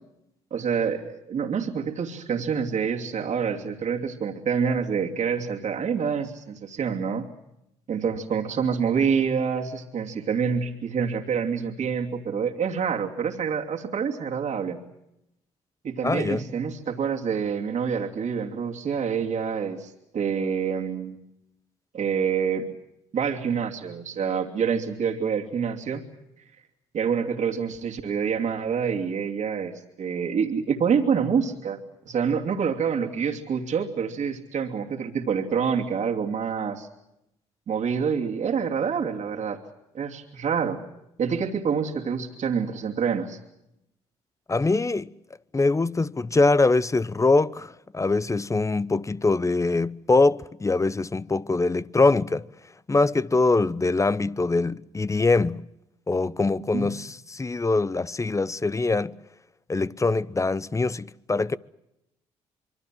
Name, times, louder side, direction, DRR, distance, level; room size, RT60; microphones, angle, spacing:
voice 1, 0.5-7.2 7.9-14.8 15.8-21.2 21.9-22.7 23.1-26.0 26.9-31.8 32.1-36.9 37.7-39.6 39.9-40.8 41.2-43.4 56.7-56.9, right 6 dB, 55° right, 2.9 m, -27 dB
voice 2, 16.0-16.4 44.5-45.1 45.5-52.5 52.9-55.6 56.1-59.2 59.7-61.6, left 3 dB, 20° left, 0.9 m, -23 dB
25.5 x 24.0 x 7.7 m
hypercardioid pair, 50°, 14 cm